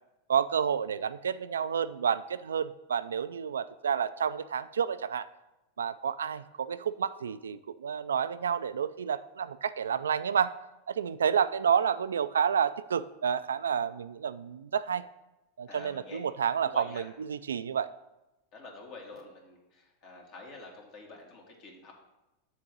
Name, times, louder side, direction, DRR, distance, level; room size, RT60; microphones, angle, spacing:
voice 1, 0.3-5.3 5.8-10.5 10.9-15.0 15.6-17.9, right 7 dB, 90° right, 15 dB, 0.3 m, -30 dB
voice 2, 15.7-16.2 16.6-17.1 18.5-21.9, left 3 dB, 55° left, 0 dB, 1.8 m, -48 dB
7.2 x 3.9 x 6.1 m, 0.96 s
hypercardioid pair, 105°, 0 cm